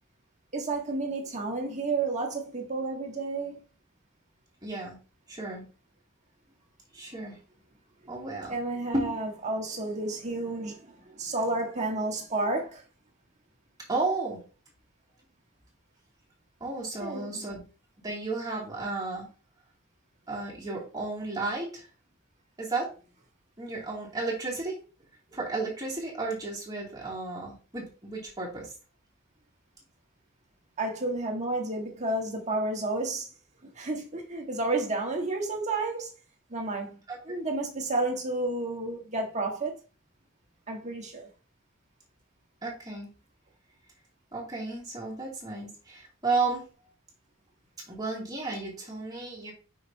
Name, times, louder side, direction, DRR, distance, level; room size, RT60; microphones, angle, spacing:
voice 1, 0.5-3.6 8.5-12.8 17.0-17.4 30.8-33.3 33.7-36.1 36.5-37.0 37.3-39.8 40.7-41.3, right 2 dB, 35° right, 1.5 m, -31 dB
voice 2, 4.6-5.0 5.3-5.6 6.9-7.4 8.1-8.6 8.9-9.1 13.9-14.4 16.6-17.6 18.0-19.3 20.3-21.9 22.6-22.9 23.6-24.8 25.3-28.7 37.1-37.2 42.6-43.1 44.3-46.7 47.9-49.5, right 3 dB, 20° right, 2.5 m, -33 dB
6.5 x 5.9 x 2.7 m
head